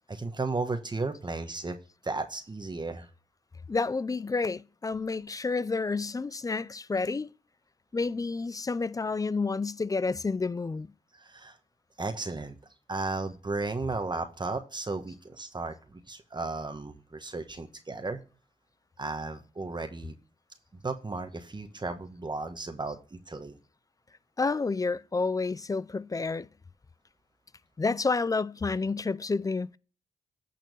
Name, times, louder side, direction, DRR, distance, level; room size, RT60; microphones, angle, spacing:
voice 1, 0.1-1.8 2.0-3.1 11.1-11.6 12.0-12.6 12.9-18.2 19.0-20.1 20.8-23.6, right 3 dB, 30° right, 1.2 m, -34 dB
voice 2, 3.7-7.3 7.9-10.9 24.4-26.5 27.8-29.8, left 4 dB, 25° left, 0.4 m, -29 dB
9.2 x 4.3 x 5.3 m
cardioid pair, 55°, 15 cm